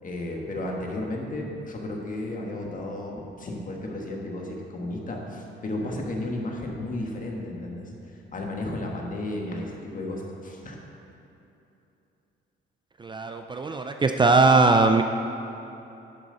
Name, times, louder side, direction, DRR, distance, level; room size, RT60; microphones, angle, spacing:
voice 1, 0.0-7.9 8.3-10.8, left 1 dB, 40° left, 0 dB, 1.6 m, -33 dB
voice 2, 13.0-15.0, right 3 dB, 25° right, 6 dB, 0.4 m, -20 dB
11.5 x 7.1 x 4.0 m, 2.9 s
cardioid pair, 90°, 20 cm